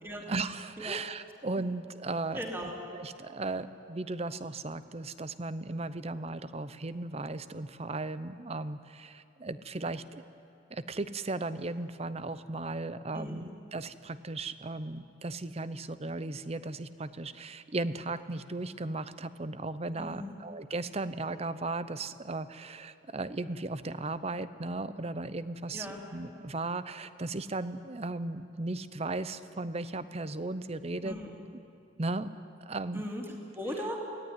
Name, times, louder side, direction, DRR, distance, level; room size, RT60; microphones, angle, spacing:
voice 1, 0.3-2.4 3.0-10.2 10.7-31.2 32.0-32.3 32.7-33.0, right 2 dB, 30° right, 13 dB, 0.7 m, -36 dB
voice 2, 2.3-2.8 13.1-13.4 20.0-20.3 25.7-26.0 31.0-31.3 32.9-34.1, equal, 10° right, -1 dB, 3.1 m, -38 dB
24.0 x 17.5 x 9.6 m, 2.5 s
head